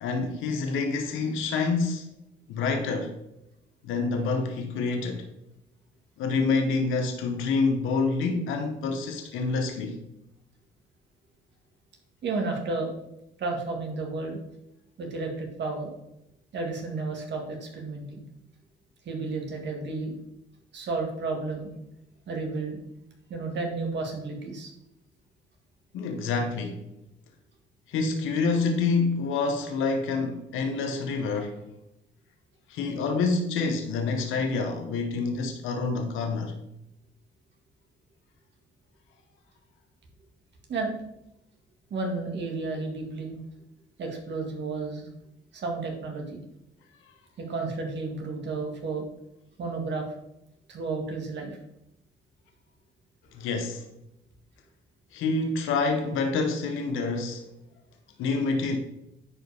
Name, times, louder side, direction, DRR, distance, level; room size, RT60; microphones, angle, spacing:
voice 1, 0.0-2.1 2.5-3.1 3.8-5.3 6.2-10.0 25.9-26.9 27.9-31.6 32.7-36.6 53.3-53.8 55.1-57.5 58.2-58.8, left 4 dB, 90° left, 1.0 m, -27 dB
voice 2, 12.2-12.9 13.4-14.4 15.0-15.9 16.5-18.2 19.1-20.1 20.7-21.7 22.3-22.8 23.3-24.7 40.7-41.0 41.9-43.4 44.0-45.1 45.5-46.4 47.4-49.1 49.6-50.1 50.7-51.6, right 3 dB, 60° right, 1.9 m, -32 dB
9.8 x 4.9 x 3.5 m
cardioid pair, 90°, 20 cm